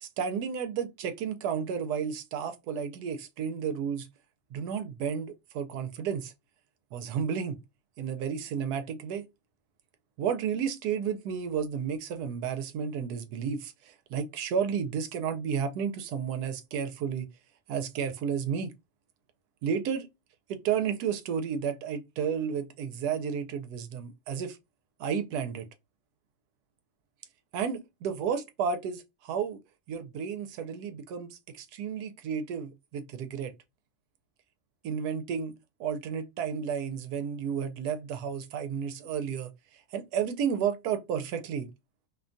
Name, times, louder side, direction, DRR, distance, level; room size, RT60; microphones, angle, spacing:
voice 1, 0.0-4.1 4.5-6.3 6.9-7.6 8.0-9.3 10.2-17.3 17.7-18.7 19.6-20.1 20.5-24.6 25.0-25.7 27.5-29.6 29.9-33.5 34.8-35.5 35.8-41.7, right 7 dB, 85° right, 1.1 m, -32 dB
2.8 x 2.2 x 2.5 m
omnidirectional pair, 1.7 m